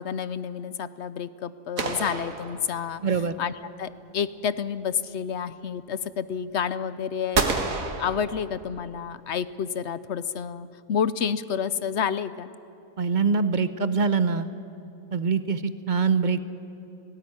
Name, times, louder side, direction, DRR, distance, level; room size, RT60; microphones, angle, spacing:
voice 1, 0.0-3.5 3.8-7.7 8.0-12.5, left 7 dB, 60° left, 15 dB, 0.9 m, -29 dB
sound 1, 1.8-3.2 7.3-8.9, right 4 dB, 65° right, 2.0 m, -29 dB
voice 2, 3.0-3.3 13.0-14.5 15.1-16.5, right 5 dB, 40° right, 12 dB, 0.8 m, -24 dB
18.0 x 17.5 x 9.8 m, 2.8 s
omnidirectional pair, 1.5 m